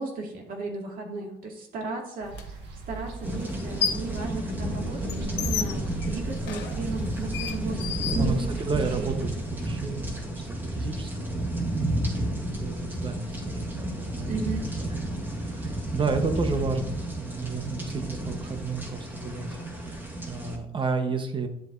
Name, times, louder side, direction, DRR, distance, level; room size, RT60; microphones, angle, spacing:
voice 1, 0.0-2.5 2.9-8.5 8.7-9.2 14.3-14.7, right 3 dB, 55° right, 1 dB, 2.3 m, -35 dB
sound 1, 2.2-9.2, right 6 dB, 85° right, 1.7 m, -40 dB
sound 2, 2.3-2.4 3.5-4.2 4.5-8.9, left 7 dB, 85° left, 0.9 m, -33 dB
sound 3, 3.2-20.6, right 1 dB, 10° right, 1.7 m, -32 dB
voice 2, 8.2-11.7 12.1-14.4 14.8-15.1 15.4-21.5, right 4 dB, 30° right, 7 dB, 1.2 m, -32 dB
10.5 x 7.6 x 2.7 m, 0.78 s
cardioid pair, 110°, 17 cm